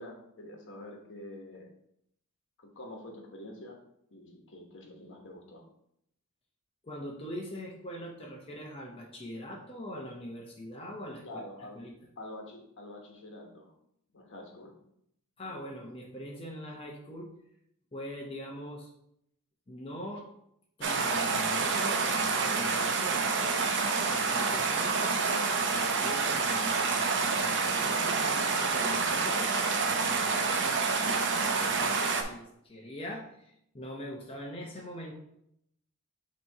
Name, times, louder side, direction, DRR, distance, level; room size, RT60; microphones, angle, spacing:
voice 1, 0.0-1.7 2.6-3.8 4.1-5.6 11.2-11.8 12.2-13.7 14.1-14.7, left 1 dB, 55° left, 1 dB, 1.2 m, -46 dB
voice 2, 6.8-11.4 11.7-11.9 15.4-17.3 17.9-18.9 19.7-20.3 20.8-23.5 24.1-25.2 25.7-29.6 29.9-31.2 31.6-35.1, equal, 25° left, -2 dB, 0.8 m, -42 dB
sound 1, 20.8-32.2, right 4 dB, 55° right, 0.7 m, -28 dB
6.7 x 3.0 x 4.7 m, 0.76 s
head